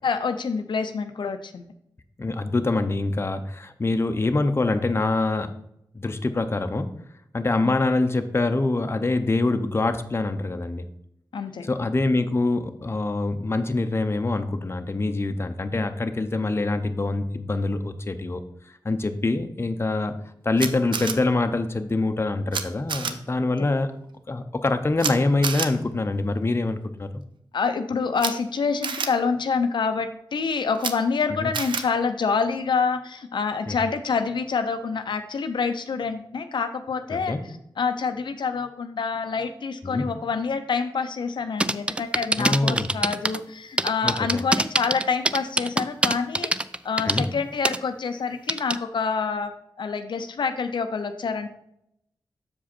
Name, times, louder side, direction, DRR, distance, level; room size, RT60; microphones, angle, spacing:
voice 1, 0.0-1.7 7.6-7.7 11.3-11.7 27.5-37.4 37.8-46.5 46.8-49.5 49.8-51.5, left 5 dB, 75° left, 8 dB, 0.5 m, -27 dB
voice 2, 2.2-5.5 5.9-6.9 7.3-10.9 11.6-18.4 18.8-20.1 20.4-23.9 24.3-27.1 31.4-31.5 33.7-33.8 37.1-37.4 39.8-40.1 42.4-42.9 44.0-44.4 47.0-47.3, left 2 dB, 30° left, 7 dB, 0.6 m, -25 dB
Camera, 20.6-21.1 22.5-22.6 22.9-23.1 25.0-25.1 25.4-25.7 28.2-28.3 28.8-29.1 30.8-30.9 31.5-31.8, right 6 dB, 90° right, 0.5 m, -27 dB
sound 1, 41.6-43.4 43.8-47.3 47.6-47.8 48.5-48.8, right 1 dB, 15° right, 0.3 m, -23 dB
6.9 x 5.0 x 4.3 m, 0.77 s
cardioid pair, 70°, 8 cm